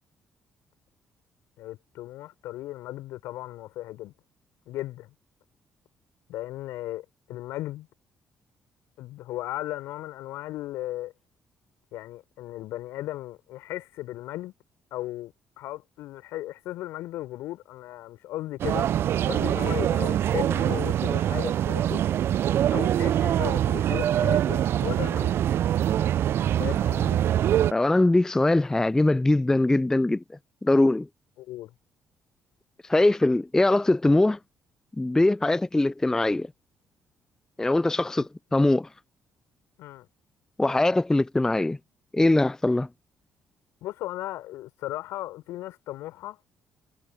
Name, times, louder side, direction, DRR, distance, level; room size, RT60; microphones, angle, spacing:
voice 1, 1.6-4.1 4.7-5.1 6.3-7.9 9.0-11.1 11.9-14.5 14.9-18.9 19.3-22.0 22.7-25.4 26.6-27.2 31.4-31.7 39.8-40.1 43.8-46.4, left 15 dB, 70° left, 4.4 m, -36 dB
sound 1, 18.6-27.7, right 11 dB, 60° right, 0.5 m, -24 dB
voice 2, 27.7-30.2 30.6-31.1 32.9-34.4 35.0-36.5 37.6-38.9 40.6-41.8 42.1-42.9, left 2 dB, 10° left, 0.3 m, -22 dB
hypercardioid pair, 45°, 5 cm